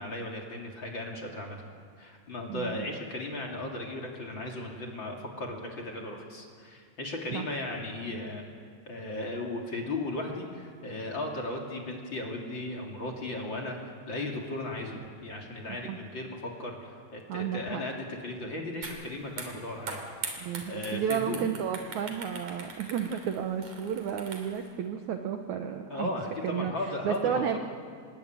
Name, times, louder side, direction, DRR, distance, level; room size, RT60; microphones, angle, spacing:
voice 1, 0.0-1.7 2.0-8.4 8.9-21.4 25.9-27.6, left 2 dB, 35° left, 0 dB, 2.8 m, -36 dB
voice 2, 2.5-2.8 7.3-7.5 15.9-16.0 17.3-17.8 20.4-26.1 26.4-26.7 27.0-27.6, right 8 dB, 70° right, 6 dB, 1.8 m, -32 dB
sound 1, 18.8-19.0 19.3-24.7, right 4 dB, 50° right, 4.3 m, -41 dB
26.5 x 21.0 x 9.0 m, 2.1 s
omnidirectional pair, 4.6 m